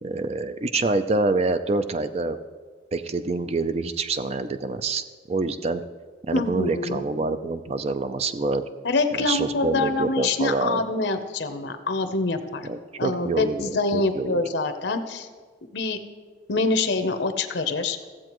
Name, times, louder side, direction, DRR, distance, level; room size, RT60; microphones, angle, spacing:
voice 1, 0.0-2.4 2.9-5.8 6.3-8.6 9.1-10.8 12.6-14.4, right 3 dB, 35° right, 10 dB, 0.4 m, -26 dB
voice 2, 6.3-7.0 8.8-12.7 13.0-15.3 15.7-16.0 16.5-18.0, left 3 dB, 80° left, 9 dB, 0.7 m, -25 dB
15.0 x 7.5 x 3.0 m, 1.5 s
head